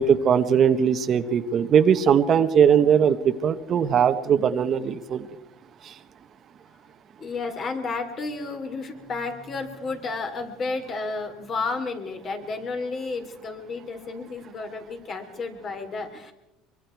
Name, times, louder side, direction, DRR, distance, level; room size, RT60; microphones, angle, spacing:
voice 1, 0.0-5.3 5.8-5.9, right 7 dB, 40° right, 10 dB, 1.1 m, -20 dB
voice 2, 7.2-16.3, left 3 dB, 35° left, 6 dB, 3.5 m, -32 dB
24.5 x 23.0 x 4.7 m, 0.98 s
cardioid pair, 125°, 0 cm